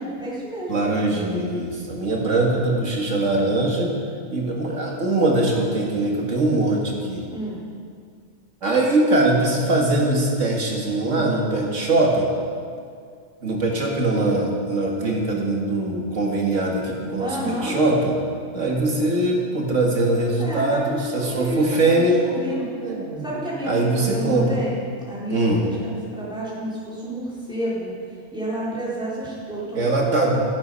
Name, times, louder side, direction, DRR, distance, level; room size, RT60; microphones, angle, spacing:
voice 1, 0.0-0.8 7.2-7.6 17.2-17.8 20.4-22.6 23.2-24.8 25.1-27.9 28.3-30.4, right 1 dB, 5° right, -9 dB, 4.2 m, -30 dB
voice 2, 0.7-3.9 4.3-7.2 8.6-12.3 13.4-18.2 18.5-22.2 22.8-23.3 23.7-24.5 25.3-25.7 29.7-30.4, right 2 dB, 70° right, -1 dB, 2.3 m, -22 dB
12.0 x 11.5 x 5.5 m, 2.2 s
omnidirectional pair, 1.4 m